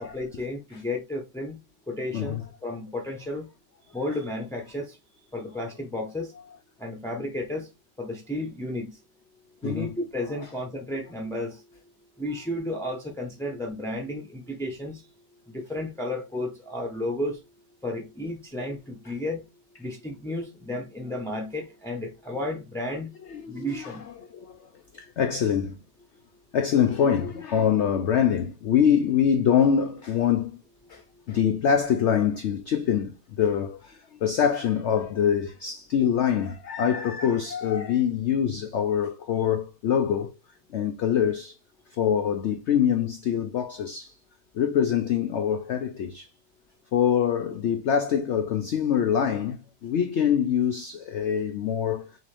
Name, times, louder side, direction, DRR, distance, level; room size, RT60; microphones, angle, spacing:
voice 1, 0.0-1.6 1.9-2.4 2.6-3.5 3.9-5.0 5.3-6.3 6.8-7.7 8.0-9.0 9.6-11.6 12.2-15.0 15.5-17.4 17.8-19.4 19.8-23.1 23.5-24.0, left 1 dB, 5° left, 0.4 m, -32 dB
voice 2, 2.1-2.4 9.6-9.9 23.3-24.6 24.9-25.8 26.5-30.6 30.9-31.0 31.3-40.4 40.7-41.5 41.9-44.1 44.5-46.3 46.9-52.1, left 8 dB, 85° left, 0.6 m, -24 dB
6.1 x 2.6 x 3.3 m
omnidirectional pair, 1.8 m